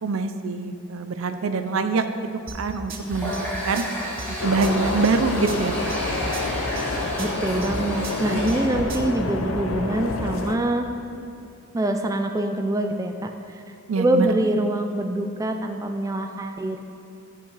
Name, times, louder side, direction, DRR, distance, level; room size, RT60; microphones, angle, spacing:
voice 1, 0.0-2.1 2.5-3.3 3.7-3.8 4.4-6.0 13.9-14.3, right 4 dB, 80° right, 8 dB, 0.5 m, -24 dB
sound 1, 2.5-9.1, right 2 dB, 45° right, 0.7 m, -35 dB
Water tap faucet, 3.0-8.8, equal, 10° left, 1.5 m, -32 dB
sound 2, 4.4-10.6, left 3 dB, 85° left, 0.6 m, -28 dB
voice 2, 7.2-10.9 11.7-13.6 14.0-16.8, right 1 dB, 15° right, 5 dB, 0.3 m, -25 dB
12.5 x 5.7 x 3.3 m, 2.6 s
head